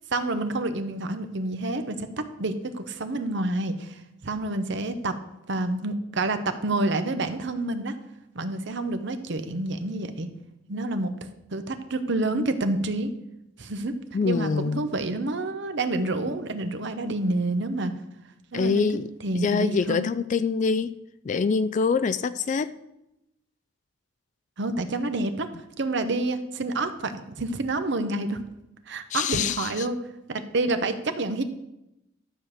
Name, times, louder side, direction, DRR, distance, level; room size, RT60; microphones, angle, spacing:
voice 1, 0.1-5.2 5.5-8.0 8.3-10.3 10.7-13.1 13.6-13.9 14.2-17.9 18.5-18.9 19.2-20.1 24.6-28.4 28.9-30.0 30.3-31.4, right 2 dB, 60° right, 9 dB, 0.9 m, -28 dB
voice 2, 14.1-14.9 18.5-21.0 21.2-22.8 29.1-29.9, left 5 dB, 40° left, 14 dB, 0.3 m, -25 dB
12.0 x 5.0 x 7.3 m, 0.90 s
head